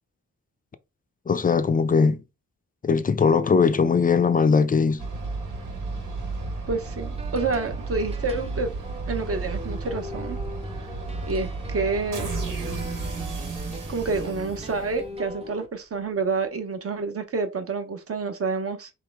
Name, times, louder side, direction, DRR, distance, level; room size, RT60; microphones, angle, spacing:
voice 1, 1.3-2.2 2.8-5.1, left 5 dB, 30° left, 0.4 m, -20 dB
sound 1, 5.0-15.3, right 3 dB, 90° right, 2.0 m, -33 dB
voice 2, 6.7-8.7 9.1-10.4 11.3-12.3 12.8-13.0 13.9-18.9, right 4 dB, 45° right, 0.9 m, -28 dB
sound 2, 7.0-15.7, equal, 20° right, 0.6 m, -41 dB
3.6 x 3.1 x 4.6 m
wide cardioid pair, 145°, 32 cm